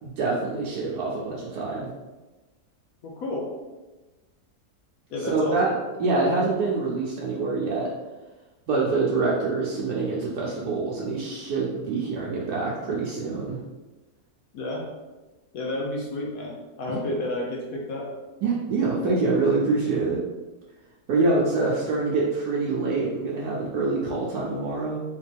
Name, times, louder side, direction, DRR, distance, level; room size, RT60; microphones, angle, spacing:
voice 1, 0.0-1.9 5.3-5.7 6.0-7.9 8.7-13.6 16.9-17.0 18.4-20.2 21.1-25.0, right 3 dB, 75° right, -5 dB, 1.2 m, -25 dB
voice 2, 3.0-3.5 5.1-5.6 14.5-14.9 15.5-18.1, left 1 dB, 70° left, -1 dB, 1.0 m, -31 dB
3.6 x 3.2 x 3.4 m, 1.2 s
omnidirectional pair, 1.7 m